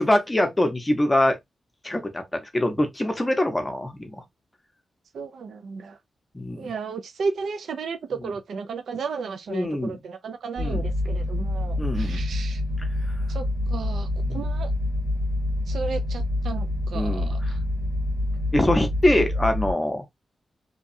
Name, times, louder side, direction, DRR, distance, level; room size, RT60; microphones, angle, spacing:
voice 1, 0.0-1.4 1.8-4.2 6.3-6.7 9.5-10.0 10.6-10.8 11.8-12.2 14.2-14.5 16.9-17.3 18.5-20.1, left 1 dB, 15° left, 0.7 m, -24 dB
voice 2, 5.1-6.0 6.6-12.6 13.3-14.7 15.7-17.6, right 5 dB, 80° right, 0.4 m, -34 dB
sound 1, 10.5-19.7, left 1 dB, 65° right, 1.7 m, -27 dB
2.8 x 2.3 x 2.5 m
wide cardioid pair, 130°, 0 cm